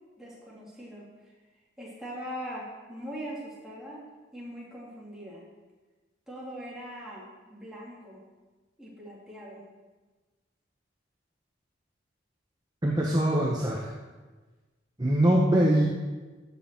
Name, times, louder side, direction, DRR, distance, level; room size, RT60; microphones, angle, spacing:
voice 1, 0.2-1.1 1.8-4.0 4.3-5.4 6.3-8.2 8.8-9.6, equal, 5° right, -7 dB, 2.9 m, -41 dB
voice 2, 12.8-13.9 15.0-15.9, right 1 dB, 20° right, -2 dB, 1.0 m, -23 dB
14.0 x 7.6 x 4.6 m, 1.3 s
head